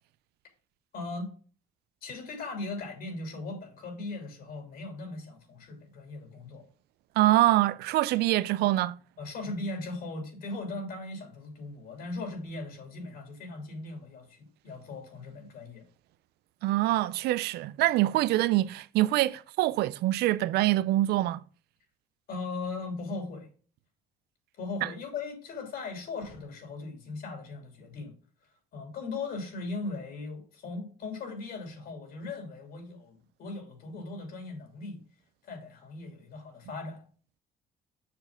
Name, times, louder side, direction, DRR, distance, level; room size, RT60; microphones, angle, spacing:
voice 1, 0.9-1.3 2.0-6.6 9.2-15.8 22.3-23.5 24.6-28.1 28.7-35.0 35.4-37.1, left 3 dB, 65° left, 2.9 m, -38 dB
voice 2, 7.2-8.9 16.6-21.4 24.8-24.9, right 16 dB, 75° right, 0.4 m, -25 dB
7.0 x 6.5 x 3.7 m
cardioid pair, 110°, 17 cm